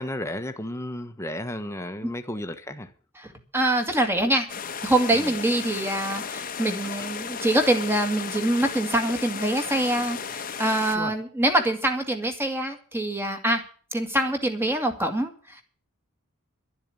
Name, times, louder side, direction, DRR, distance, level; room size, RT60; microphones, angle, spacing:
voice 1, 0.0-2.9 5.1-5.3 10.9-11.1, left 1 dB, 15° left, 1.2 m, -33 dB
voice 2, 3.2-4.5 4.8-13.6 13.9-15.6, right 1 dB, 10° right, 1.9 m, -25 dB
sound 1, 4.5-11.0, left 6 dB, 40° left, 1.1 m, -34 dB
12.0 x 7.3 x 9.6 m
head